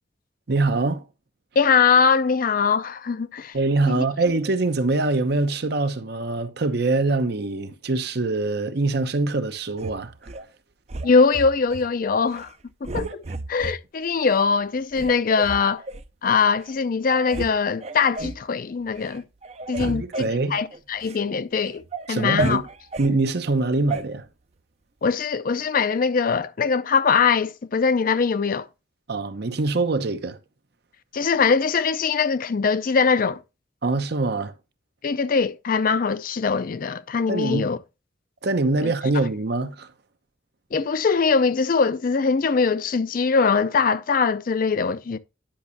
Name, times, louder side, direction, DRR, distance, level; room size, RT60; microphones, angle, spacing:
voice 1, 0.5-1.0 3.5-10.3 19.8-20.6 22.1-22.7 23.0-24.3 29.1-30.4 33.8-34.5 37.3-37.7 38.4-39.9, right 3 dB, 60° right, 0.8 m, -24 dB
voice 2, 1.6-3.5 3.9-4.0 11.0-12.5 12.8-13.2 13.5-15.8 16.2-19.2 19.7-21.8 22.1-22.6 25.0-28.7 31.1-33.4 35.0-37.8 38.8-38.9 40.7-45.2, left 5 dB, 50° left, 0.5 m, -22 dB
sound 1, 9.8-10.4 10.9-11.9 12.3-12.5 12.8-13.8 14.3-14.4 14.9-16.1 16.7-16.8 17.1-17.5 17.8-18.4 18.9-19.2 19.4-21.2 21.6-23.1 23.9-24.0, right 3 dB, 35° right, 0.5 m, -33 dB
10.0 x 6.1 x 2.7 m
head